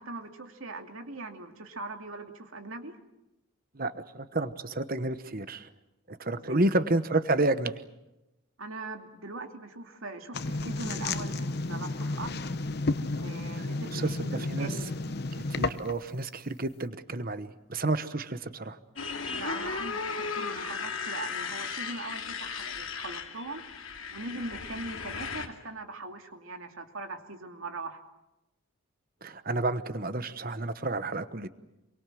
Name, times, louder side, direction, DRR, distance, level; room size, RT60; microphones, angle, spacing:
voice 1, 0.0-3.0 6.4-6.8 8.6-12.3 13.1-14.9 19.3-23.6 24.1-28.0, right 2 dB, 75° right, 5 dB, 2.5 m, -41 dB
voice 2, 3.7-5.7 6.1-7.8 13.5-14.8 15.4-18.8 29.2-31.5, right 2 dB, 40° right, 12 dB, 1.1 m, -30 dB
sound 1, 10.3-16.1, left 2 dB, 50° left, 0.9 m, -32 dB
Motorcycle, 19.0-25.5, left 5 dB, 70° left, 2.8 m, -36 dB
28.0 x 23.5 x 7.7 m, 0.97 s
head